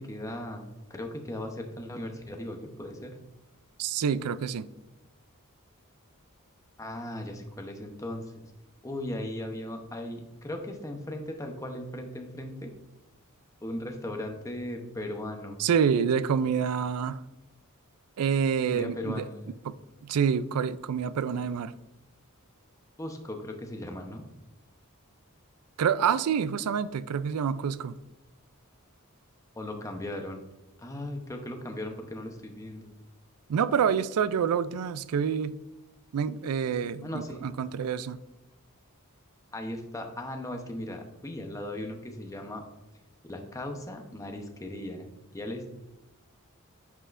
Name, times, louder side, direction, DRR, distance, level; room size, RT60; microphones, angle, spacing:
voice 1, 0.0-3.2 6.8-8.5 8.8-12.7 13.6-15.6 18.7-19.5 23.0-24.2 29.6-30.5 30.8-32.9 37.0-37.4 39.5-42.6 43.2-45.7, left 1 dB, 15° left, 0.8 m, -37 dB
voice 2, 3.8-4.7 15.6-17.2 18.2-19.3 19.7-19.8 20.0-21.7 25.8-28.0 33.5-35.6 36.1-38.2, right 7 dB, 85° right, 0.4 m, -27 dB
9.5 x 5.5 x 2.5 m
head